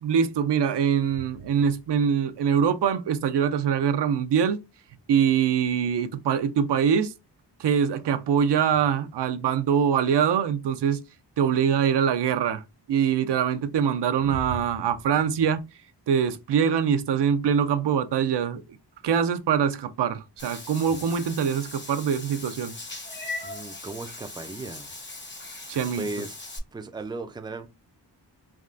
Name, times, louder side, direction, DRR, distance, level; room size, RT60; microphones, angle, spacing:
voice 1, 0.0-4.6 5.1-7.1 7.6-11.0 11.4-12.6 12.9-15.7 16.1-18.6 19.0-22.7 25.7-26.0, right 7 dB, 70° right, 0.5 m, -23 dB
Meow / Water / Bathtub (filling or washing), 20.4-26.6, left 2 dB, 25° left, 0.8 m, -39 dB
voice 2, 23.4-24.9 25.9-26.4 26.7-27.7, right 3 dB, 10° right, 0.4 m, -36 dB
3.5 x 2.3 x 2.5 m
cardioid pair, 50°, 44 cm